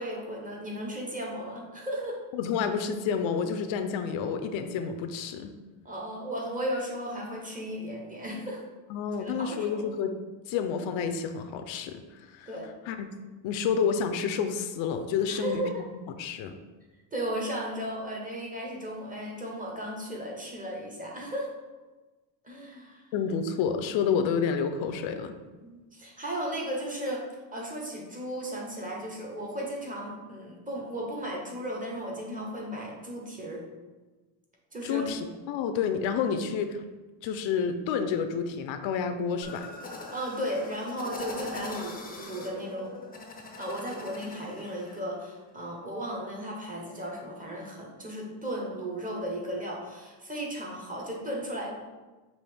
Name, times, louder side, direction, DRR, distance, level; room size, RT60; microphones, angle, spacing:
voice 1, 0.0-2.2 5.8-8.6 9.2-9.9 12.5-12.7 15.3-15.8 17.1-21.6 22.4-23.0 25.6-27.2 27.5-33.6 34.7-35.1 40.1-42.9 43.6-51.7, equal, 20° right, -2 dB, 0.8 m, -35 dB
voice 2, 2.3-5.5 8.9-10.2 10.5-12.5 12.9-13.1 13.4-15.9 16.2-16.6 23.1-25.3 34.8-36.8 37.2-39.7, left 6 dB, 75° left, 7 dB, 0.5 m, -29 dB
sound 1, 39.4-45.0, left 3 dB, 20° left, 0.5 m, -41 dB
5.4 x 2.5 x 3.4 m, 1.2 s
cardioid pair, 145°, 46 cm